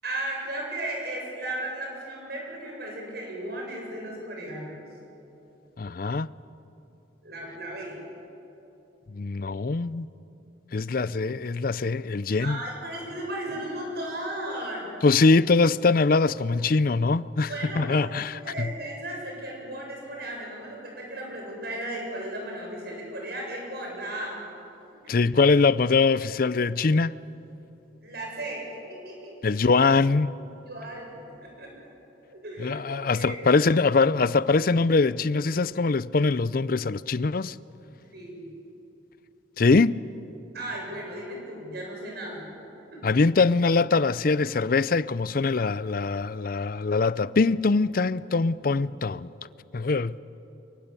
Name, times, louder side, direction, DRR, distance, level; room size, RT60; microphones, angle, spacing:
voice 1, 0.0-4.8 7.2-8.0 12.4-14.9 17.5-24.5 28.0-29.6 30.6-31.1 31.4-31.7 32.3-33.4 38.1-38.4 40.5-42.5 42.9-43.1, right 1 dB, 55° right, 7.4 m, -35 dB
voice 2, 5.8-6.3 9.1-10.1 10.7-12.6 15.0-17.5 17.8-18.7 25.1-27.2 29.4-30.3 32.6-37.5 39.6-39.9 43.0-49.3 49.7-50.2, left 4 dB, 50° left, 0.5 m, -22 dB
24.5 x 23.0 x 8.3 m
head